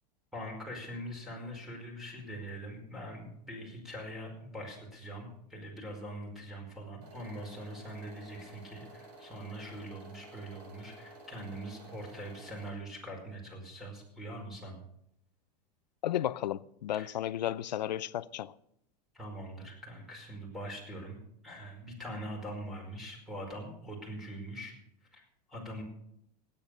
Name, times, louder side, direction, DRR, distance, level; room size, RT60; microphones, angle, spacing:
voice 1, 0.3-14.8 17.0-17.1 19.1-21.2 21.4-24.7 25.1-25.2 25.5-25.8, equal, ahead, 5.0 m, -43 dB
sound 1, 7.0-12.7, right 2 dB, 60° right, 7.3 m, -52 dB
voice 2, 16.0-18.5, left 12 dB, 85° left, 0.6 m, -33 dB
17.5 x 8.9 x 6.6 m
hypercardioid pair, 115°, 21 cm